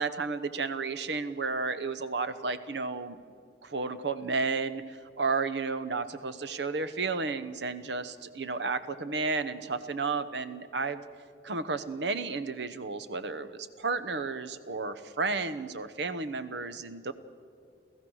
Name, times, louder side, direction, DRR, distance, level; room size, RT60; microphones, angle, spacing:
voice 1, 0.0-3.2 3.6-11.0 11.4-17.1, right 4 dB, 75° right, 12 dB, 0.9 m, -32 dB
29.0 x 15.0 x 6.3 m, 2.3 s
head